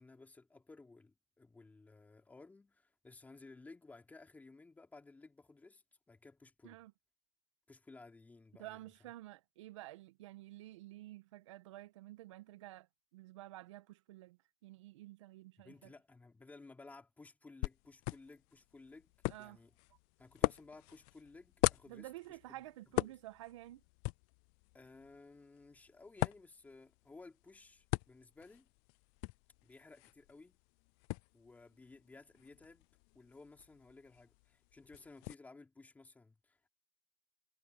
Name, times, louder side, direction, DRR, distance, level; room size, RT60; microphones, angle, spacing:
voice 1, 0.0-6.8 7.7-8.8 15.6-19.7 20.2-22.6 23.0-23.2 24.7-28.7 29.6-30.6 31.3-32.9 33.1-36.7, left 3 dB, 10° left, 3.8 m, -57 dB
voice 2, 8.6-15.9 19.3-19.6 21.9-23.8, right 16 dB, 70° right, 1.6 m, -51 dB
sound 1, 17.6-35.3, left 30 dB, 45° left, 0.5 m, -42 dB
hypercardioid pair, 125°, 16 cm